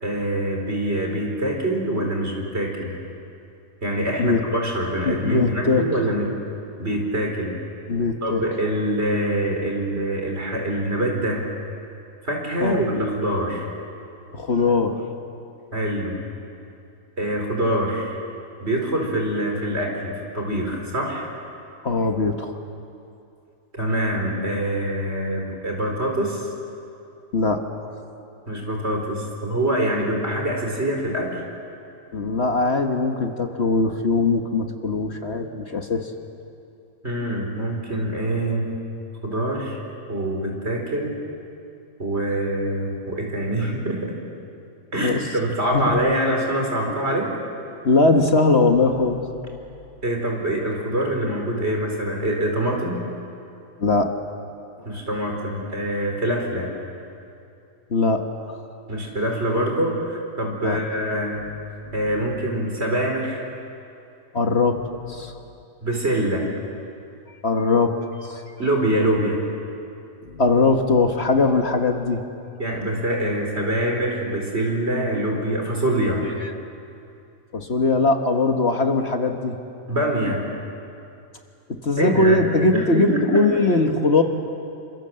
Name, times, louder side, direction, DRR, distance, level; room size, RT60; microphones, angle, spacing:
voice 1, 0.0-2.9 3.8-6.3 6.8-7.5 8.2-11.4 12.2-13.7 15.7-16.2 17.2-18.2 18.6-21.3 23.7-26.5 28.5-31.4 37.0-38.7 39.2-39.8 40.1-41.2 42.0-44.2 44.9-47.3 50.0-53.0 54.8-56.7 58.9-61.4 61.9-63.4 65.8-66.5 68.6-69.4 72.6-76.2 79.9-80.5 82.0-82.4 82.7-83.6, right 1 dB, 45° right, 1 dB, 4.7 m, -24 dB
voice 2, 5.0-5.9 7.9-8.4 12.6-12.8 14.3-15.0 21.8-22.6 27.3-27.6 32.1-36.1 45.0-45.2 45.7-46.0 46.9-47.0 47.8-49.2 53.8-54.1 57.9-58.6 60.6-60.8 61.9-62.0 64.3-65.3 67.4-67.9 68.2-68.4 70.2-72.2 76.4-76.5 77.5-79.5 81.8-84.2, left 3 dB, 50° left, 4 dB, 1.6 m, -20 dB
28.0 x 25.5 x 7.7 m, 2.6 s
omnidirectional pair, 1.5 m